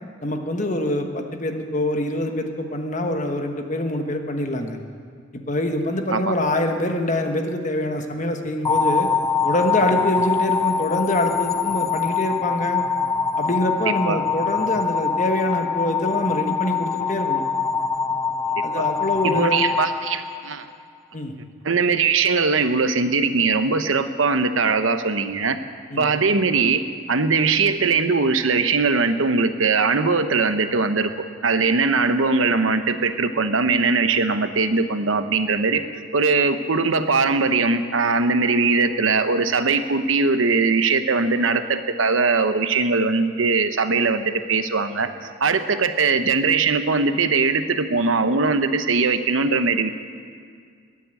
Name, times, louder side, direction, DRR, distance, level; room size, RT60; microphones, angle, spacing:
voice 1, 0.2-4.8 5.3-9.1 9.4-12.8 13.4-17.4 18.6-19.7 21.1-21.3 25.9-26.1, left 1 dB, 35° left, 5 dB, 1.3 m, -25 dB
sound 1, 8.6-20.8, left 5 dB, 15° left, 0.4 m, -24 dB
voice 2, 13.9-14.2 18.8-18.9 19.2-20.7 21.6-25.6 26.0-26.8 27.1-31.1 31.4-35.8 36.1-49.9, right 4 dB, 75° right, 9 dB, 0.9 m, -20 dB
21.0 x 7.6 x 9.1 m, 2.1 s
head